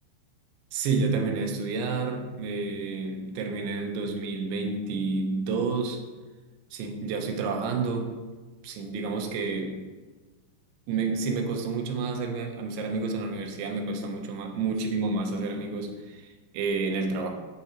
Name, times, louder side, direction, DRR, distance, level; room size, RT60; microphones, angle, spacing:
voice 1, 0.7-6.0 6.7-8.2 8.6-9.8 10.9-17.3, right 4 dB, 75° right, 4 dB, 3.2 m, -30 dB
9.6 x 8.5 x 4.4 m, 1.3 s
omnidirectional pair, 5.6 m